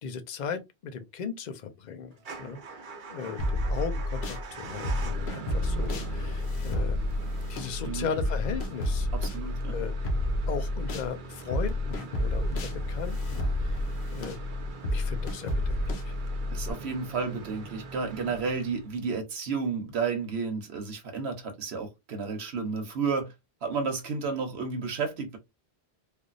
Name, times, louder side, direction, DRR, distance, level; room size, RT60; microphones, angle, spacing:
voice 1, 0.0-9.1 9.7-10.0 10.5-14.4 14.9-16.1 16.8-16.9, left 6 dB, 50° left, 0.7 m, -37 dB
Motor vehicle (road) / Engine starting / Idling, 2.2-19.1, right 3 dB, 55° right, 0.8 m, -43 dB
sound 1, 3.4-4.4 4.8-11.1 11.5-16.7, left 1 dB, 85° left, 1.1 m, -30 dB
voice 2, 9.1-9.8 16.5-23.3 23.6-25.4, right 5 dB, 80° right, 1.2 m, -32 dB
3.4 x 2.5 x 2.4 m
omnidirectional pair, 1.1 m